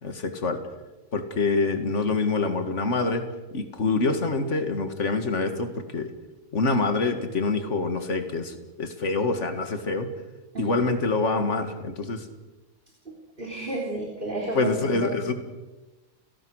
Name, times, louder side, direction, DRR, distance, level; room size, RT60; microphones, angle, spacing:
voice 1, 0.0-0.6 1.1-3.2 3.5-6.1 6.5-10.1 10.6-12.3 14.5-15.3, left 3 dB, 55° left, 7 dB, 2.3 m, -26 dB
voice 2, 13.4-15.2, right 2 dB, 40° right, -1 dB, 3.7 m, -32 dB
30.0 x 18.0 x 6.5 m, 1.1 s
omnidirectional pair, 1.5 m